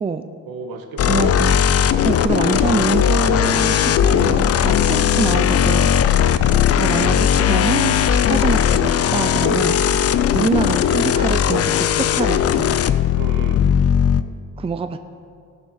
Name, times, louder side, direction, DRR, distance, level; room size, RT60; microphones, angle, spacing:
voice 1, 0.5-1.2 6.2-6.7 13.2-13.6, right 4 dB, 80° right, 5 dB, 1.6 m, -34 dB
sound 1, 1.0-14.2, left 9 dB, 45° left, 0.5 m, -17 dB
voice 2, 1.1-1.6 2.0-5.9 6.8-9.8 10.3-12.8 14.6-15.0, right 5 dB, 15° right, 9 dB, 0.5 m, -24 dB
18.0 x 6.8 x 6.5 m, 2.3 s
cardioid pair, 130°, 35 cm